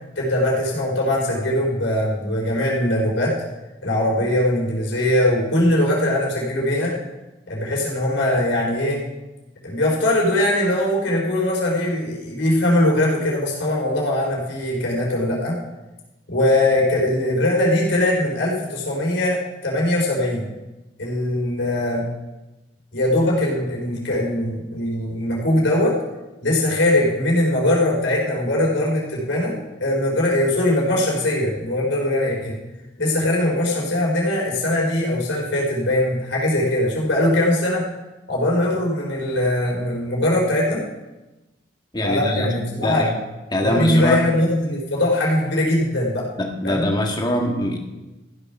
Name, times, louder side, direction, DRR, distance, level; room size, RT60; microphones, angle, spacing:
voice 1, 0.2-3.3 3.8-6.9 7.5-9.0 9.6-15.6 16.3-19.4 19.6-20.5 21.0-22.0 22.9-25.9 26.4-32.6 33.0-37.8 38.3-40.8 42.0-43.0 43.6-46.2 46.6-46.9, left 1 dB, 85° left, -3 dB, 4.3 m, -21 dB
voice 2, 41.9-43.1 43.5-44.3 46.4-47.8, left 1 dB, 25° left, 1 dB, 1.8 m, -23 dB
15.0 x 7.0 x 5.9 m, 1.1 s
head